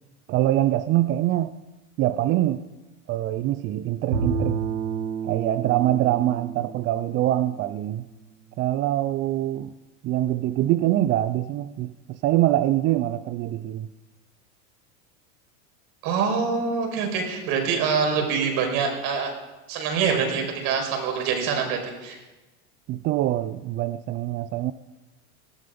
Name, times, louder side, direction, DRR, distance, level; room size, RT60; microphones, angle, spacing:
voice 1, 0.3-1.5 2.0-2.6 3.1-4.6 5.2-8.1 8.6-9.7 10.0-13.9 22.9-24.7, right 13 dB, 30° right, 13 dB, 0.4 m, -24 dB
Bowed string instrument, 4.1-8.4, right 6 dB, 85° right, 2.7 m, -31 dB
voice 2, 16.0-19.3 19.7-22.2, right 6 dB, 50° right, 3 dB, 5.3 m, -25 dB
19.0 x 13.5 x 5.2 m, 1.1 s
supercardioid pair, 125°, 44 cm